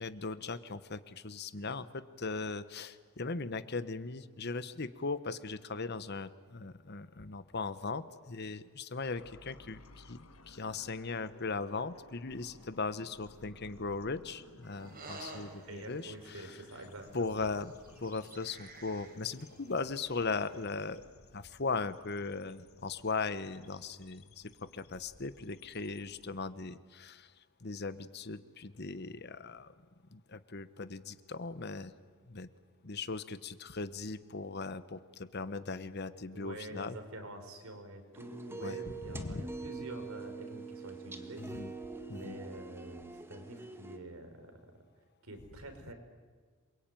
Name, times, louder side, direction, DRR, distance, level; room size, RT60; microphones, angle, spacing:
voice 1, 0.0-16.6 17.1-17.7 18.0-21.0 21.3-29.7 30.1-31.9 32.3-32.5 32.8-37.0 38.6-38.8 39.0-39.4 41.4-41.7 42.1-42.4, left 4 dB, 50° left, 13 dB, 1.1 m, -38 dB
sound 1, 9.1-26.3, left 3 dB, 85° left, 1.6 m, -58 dB
sound 2, 14.6-20.9, right 3 dB, 45° right, 5.3 m, -52 dB
voice 2, 15.7-17.3 36.3-41.5 42.1-44.6 45.2-45.9, right 1 dB, 85° right, 6 dB, 4.6 m, -47 dB
sound 3, 38.1-44.0, right 3 dB, 10° right, 1.7 m, -45 dB
28.0 x 22.5 x 9.1 m, 1.5 s
head